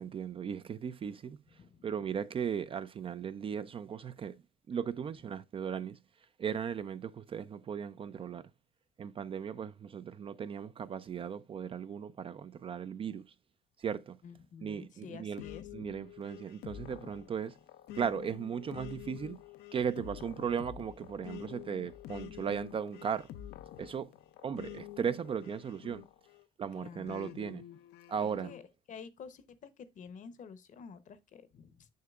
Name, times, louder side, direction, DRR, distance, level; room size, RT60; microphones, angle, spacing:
voice 1, 0.0-1.4 1.8-4.3 4.7-6.0 6.4-8.4 9.0-13.2 13.8-14.2 14.6-15.4 15.7-17.5 17.9-19.4 19.7-23.3 23.8-24.1 24.4-26.0 26.6-27.6 28.1-28.5, right 7 dB, 30° right, 0.4 m, -37 dB
voice 2, 14.2-15.7 26.7-27.1 28.2-28.6 28.9-31.9, left 6 dB, 50° left, 0.8 m, -49 dB
sound 1, 15.4-26.5 27.1-28.6, left 12 dB, 75° left, 0.5 m, -48 dB
6.7 x 6.5 x 2.3 m
cardioid pair, 110°, 17 cm